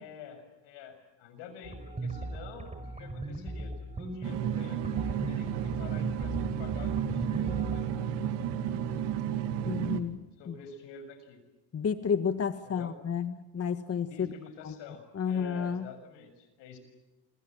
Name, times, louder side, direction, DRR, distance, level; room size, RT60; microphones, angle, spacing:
voice 1, 0.0-8.3 10.4-11.4 12.6-12.9 14.1-16.8, left 6 dB, 85° left, 9 dB, 6.8 m, -48 dB
sound 1, 1.6-7.8, right 2 dB, 15° right, 5.4 m, -38 dB
sound 2, 4.2-10.0, right 9 dB, 85° right, 2.4 m, -32 dB
voice 2, 9.7-10.2 10.5-10.6 11.7-14.3 14.6-14.7 15.1-15.9, left 7 dB, 35° left, 10 dB, 1.4 m, -31 dB
28.5 x 26.0 x 7.5 m, 1.0 s
cardioid pair, 95°, 41 cm